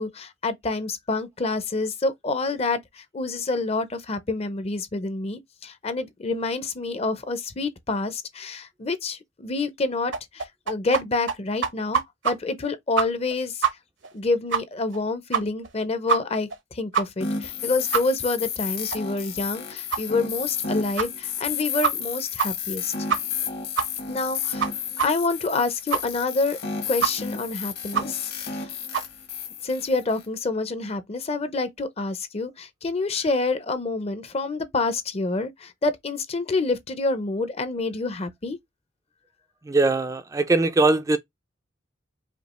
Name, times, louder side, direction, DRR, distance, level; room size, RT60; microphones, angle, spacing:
voice 1, 0.0-13.6 14.1-22.9 24.1-24.7 25.0-26.6 26.8-28.7 29.6-38.6, left 3 dB, 35° left, 0.6 m, -27 dB
sound 1, 10.1-11.0 11.3-11.4 11.6-12.3 12.6-12.7 13.0-13.3 13.6-13.7 14.0-14.1 14.5-14.6 14.9-15.0 15.3-15.7 16.1-16.2 16.5-16.6 16.9-17.0 17.4-17.5 17.9-18.0 18.4-18.5 18.9-19.0 19.4-19.5 19.9-20.0 20.5-20.6 21.0-21.1 21.5-21.6 21.8-22.1 22.4-22.5 22.7-22.8 23.1-23.4 23.8-23.9 24.2-24.3 24.6-24.7 25.0-25.1 25.4-25.5 25.9-26.0 26.4-26.5 27.0-27.1 27.4-27.5 27.9-28.0 28.4-28.5 28.9-29.1, right 7 dB, 75° right, 0.8 m, -24 dB
sound 2, 17.2-30.3, left 6 dB, 55° left, 1.1 m, -32 dB
voice 2, 39.7-41.2, right 3 dB, 15° right, 0.3 m, -21 dB
5.1 x 2.3 x 3.1 m
head